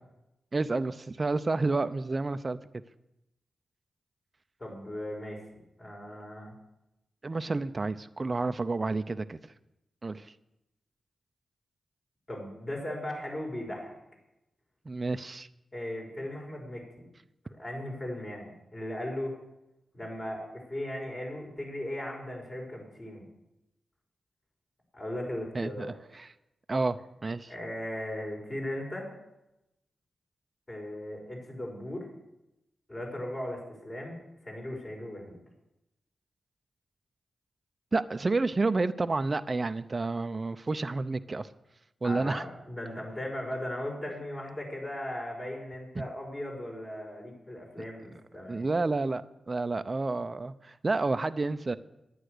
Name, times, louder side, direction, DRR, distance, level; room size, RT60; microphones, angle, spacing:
voice 1, 0.5-2.6 7.2-9.4 10.0-10.3 14.9-15.5 25.5-25.9 26.2-26.3 26.7-27.5 37.9-41.5 42.0-42.4 46.0-46.1 48.5-51.8, right 3 dB, 40° right, 11 dB, 0.6 m, -30 dB
voice 2, 4.6-5.4 5.8-6.5 12.3-14.0 15.7-17.0 17.6-19.3 19.9-23.3 24.9-25.9 27.5-29.1 30.7-32.1 32.9-35.4 42.0-48.7, left 1 dB, 35° left, -1 dB, 5.4 m, -37 dB
10.5 x 9.6 x 6.6 m, 0.90 s
cardioid pair, 50°, 0 cm